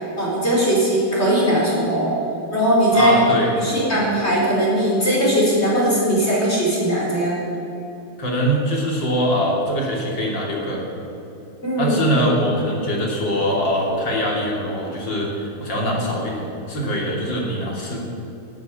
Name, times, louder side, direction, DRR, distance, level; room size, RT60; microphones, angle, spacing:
voice 1, 0.2-2.1 2.5-3.2 3.6-7.4 11.6-11.9, right 1 dB, 20° left, -4 dB, 4.2 m, -19 dB
voice 2, 2.9-3.8 8.2-10.8 11.8-18.0, equal, 35° left, -2 dB, 3.0 m, -23 dB
13.0 x 11.5 x 9.2 m, 2.9 s
omnidirectional pair, 4.0 m